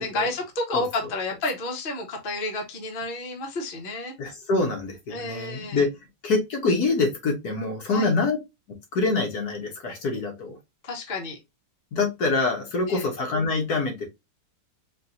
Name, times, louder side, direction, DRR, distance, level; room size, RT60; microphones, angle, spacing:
voice 1, 0.0-4.1 5.1-5.8 7.9-8.1 10.8-11.4 12.9-13.1, left 2 dB, 35° left, 1.0 m, -30 dB
voice 2, 4.2-5.9 6.2-8.4 8.9-10.6 11.9-14.1, left 3 dB, 55° left, 1.5 m, -25 dB
4.4 x 2.9 x 2.6 m
omnidirectional pair, 2.1 m